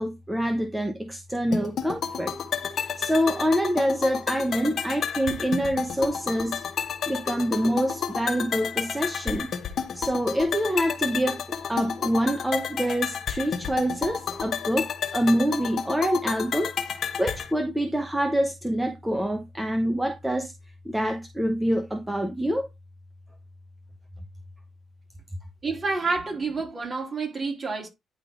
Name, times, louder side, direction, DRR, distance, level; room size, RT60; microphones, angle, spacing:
voice 1, 0.0-2.3 2.7-6.6 7.1-9.5 9.9-11.4 11.7-20.5 20.8-22.7, equal, 5° right, 1.0 m, -26 dB
sound 1, 1.5-17.5, left 7 dB, 60° left, 1.1 m, -31 dB
voice 2, 25.6-27.9, right 4 dB, 35° right, 3.7 m, -28 dB
10.0 x 3.8 x 3.9 m
cardioid pair, 90°, 0 cm